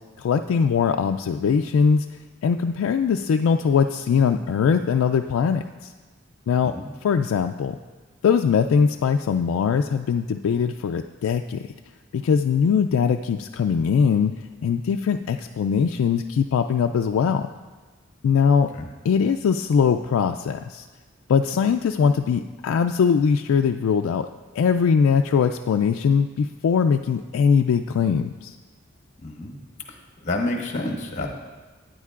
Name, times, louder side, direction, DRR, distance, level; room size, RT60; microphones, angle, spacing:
voice 1, 0.2-2.1 2.4-5.9 6.5-6.7 7.0-7.8 8.2-11.7 12.1-14.3 14.6-17.5 18.2-18.7 19.0-20.9 21.3-24.3 24.5-28.6, left 6 dB, 90° left, 5 dB, 0.3 m, -21 dB
voice 2, 29.2-29.6 29.9-31.3, left 2 dB, 35° left, 2 dB, 1.0 m, -29 dB
12.5 x 9.3 x 2.4 m, 1.4 s
head